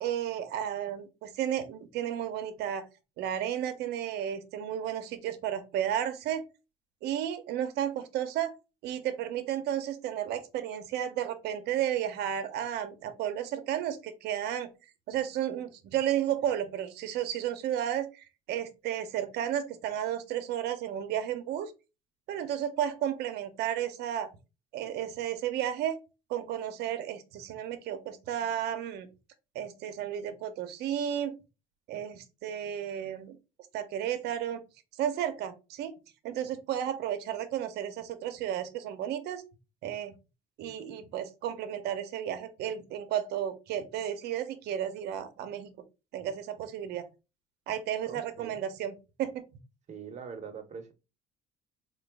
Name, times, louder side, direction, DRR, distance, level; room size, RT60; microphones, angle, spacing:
voice 1, 0.0-2.8 3.2-6.4 7.0-8.5 8.8-14.7 15.1-21.7 22.3-24.3 24.7-26.0 26.3-29.1 29.5-31.3 31.9-33.4 33.7-34.6 35.0-35.9 36.2-39.4 39.8-40.1 40.6-45.7 46.1-47.0 47.7-49.4, right 10 dB, 75° right, 10 dB, 0.6 m, -33 dB
voice 2, 48.1-48.6 49.9-50.9, right 6 dB, 45° right, 6 dB, 0.8 m, -43 dB
3.9 x 2.2 x 3.3 m, 0.29 s
cardioid pair, 110°, 17 cm